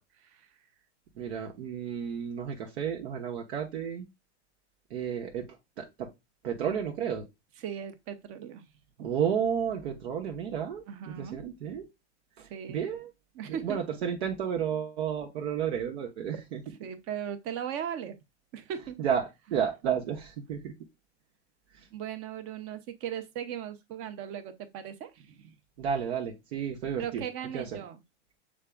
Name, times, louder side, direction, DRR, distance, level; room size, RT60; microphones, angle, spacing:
voice 1, 1.2-4.1 4.9-5.5 5.8-6.1 6.4-7.2 9.0-11.8 12.7-13.1 13.6-16.6 19.0-19.2 19.5-20.7 25.8-27.2 27.5-27.7, right 8 dB, 70° right, 1.1 m, -32 dB
voice 2, 7.6-8.6 9.0-9.1 10.9-11.4 12.5-12.8 13.3-13.8 16.3-16.4 16.8-18.1 18.5-19.0 19.5-19.7 21.9-25.5 27.0-28.0, right 9 dB, 40° right, 0.9 m, -38 dB
6.4 x 3.6 x 2.3 m
supercardioid pair, 130°, 34 cm